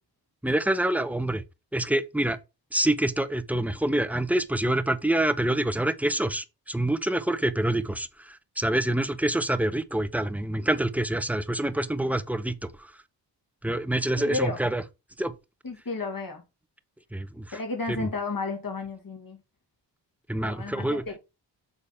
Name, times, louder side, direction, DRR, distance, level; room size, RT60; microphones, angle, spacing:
voice 1, 0.4-1.4 1.7-2.4 2.7-12.9 13.6-14.8 15.2-15.3 17.1-17.6 17.9-18.1 20.3-21.0, right 1 dB, 5° right, 1.0 m, -26 dB
voice 2, 14.2-14.6 15.6-16.4 17.5-19.4 20.4-21.2, left 3 dB, 50° left, 2.7 m, -32 dB
6.9 x 4.1 x 5.5 m
cardioid pair, 45°, 44 cm